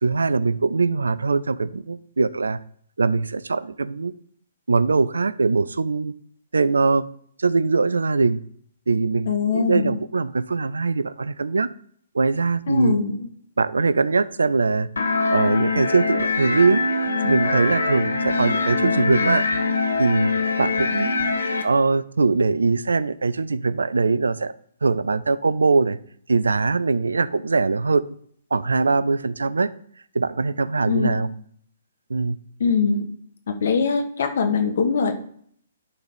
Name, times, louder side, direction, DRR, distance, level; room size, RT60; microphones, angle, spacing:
voice 1, 0.0-2.6 3.0-4.1 4.7-6.1 6.5-7.1 7.4-8.4 8.9-11.7 12.1-13.0 13.6-14.9 15.3-16.8 17.2-19.5 20.0-20.3 20.6-21.2 21.6-24.5 24.8-26.0 26.3-28.0 28.5-29.7 30.1-31.3 32.1-32.4, right 4 dB, 75° right, 18 dB, 0.4 m, -21 dB
voice 2, 9.3-10.0 12.7-13.3 30.9-31.1 32.6-33.1 33.6-35.1, left 5 dB, 60° left, 7 dB, 1.3 m, -22 dB
sound 1, 15.0-21.6, left 3 dB, 75° left, 1.1 m, -23 dB
11.5 x 4.1 x 5.0 m, 0.62 s
figure-of-eight pair, 125°, 0 cm